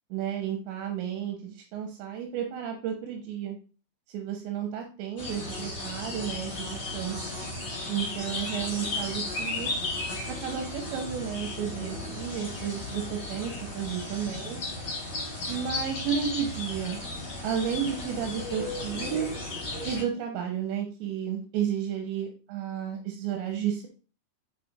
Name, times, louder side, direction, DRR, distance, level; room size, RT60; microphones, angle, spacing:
voice 1, 0.1-3.6 4.1-7.3 7.9-9.7 10.3-14.6 15.5-17.0 17.4-19.3 19.8-23.9, right 8 dB, 80° right, 2 dB, 3.0 m, -32 dB
sound 1, 5.2-20.0, left 2 dB, 30° left, 4.0 m, -35 dB
6.8 x 6.7 x 2.5 m, 0.36 s
omnidirectional pair, 5.6 m